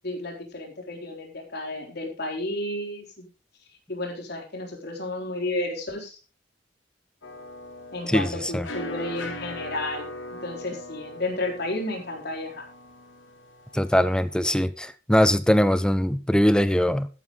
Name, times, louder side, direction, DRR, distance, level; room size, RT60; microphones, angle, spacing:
voice 1, 0.0-3.3 3.9-6.1 7.9-10.1 10.4-12.6, left 2 dB, 60° left, 4.2 m, -32 dB
sound 1, 7.2-14.6, left 1 dB, 85° left, 2.6 m, -40 dB
voice 2, 8.1-8.7 13.7-17.1, equal, 5° left, 0.6 m, -21 dB
13.0 x 11.0 x 3.8 m
head